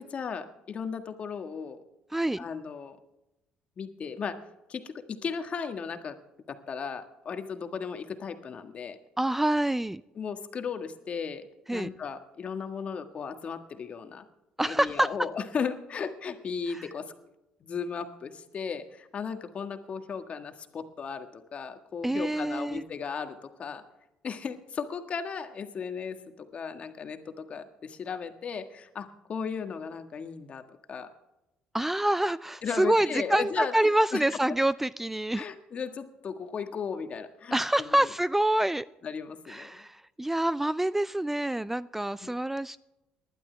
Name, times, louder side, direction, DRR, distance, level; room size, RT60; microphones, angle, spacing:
voice 1, 0.0-1.8 2.4-3.0 3.8-4.4 4.7-6.2 6.5-9.0 10.1-11.4 11.7-14.2 14.6-17.1 17.6-23.8 24.2-31.1 32.6-33.7 34.1-34.2 34.5-34.6 35.3-37.9 39.0-39.8 42.2-42.3, left 6 dB, 45° left, 7 dB, 1.6 m, -36 dB
voice 2, 2.1-2.4 9.2-10.0 11.7-11.9 14.6-15.1 22.0-22.8 31.7-35.4 37.5-38.8 39.5-42.8, right 1 dB, 10° right, 18 dB, 0.3 m, -26 dB
19.5 x 11.5 x 3.4 m, 0.94 s
supercardioid pair, 75°, 3 cm